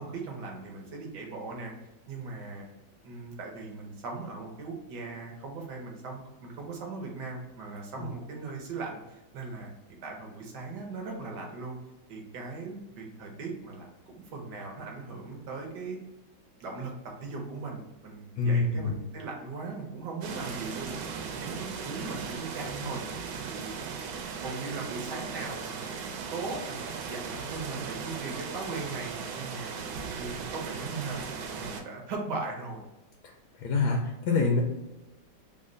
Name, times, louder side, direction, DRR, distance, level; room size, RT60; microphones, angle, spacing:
voice 1, 0.0-1.7 2.1-2.7 3.0-11.8 12.1-16.0 16.6-16.9 17.2-23.0 23.5-23.8 24.1-32.8, right 3 dB, 65° right, 1 dB, 1.3 m, -39 dB
voice 2, 18.4-18.9 33.6-34.6, left 3 dB, 75° left, 0 dB, 0.9 m, -25 dB
sound 1, 20.2-31.8, right 6 dB, 85° right, 1.4 m, -37 dB
3.5 x 2.1 x 3.7 m, 0.99 s
omnidirectional pair, 2.1 m